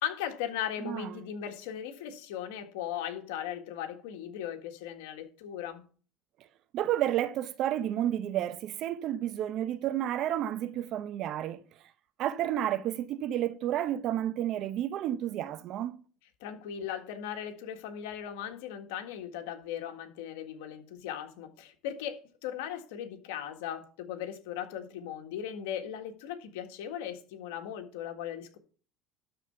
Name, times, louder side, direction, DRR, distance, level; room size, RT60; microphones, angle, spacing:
voice 1, 0.0-5.8 16.4-28.6, left 10 dB, 85° left, 1.7 m, -38 dB
voice 2, 0.8-1.1 6.7-11.6 12.2-16.0, right 12 dB, 55° right, 0.9 m, -31 dB
12.5 x 4.2 x 6.9 m
supercardioid pair, 110°, 0 cm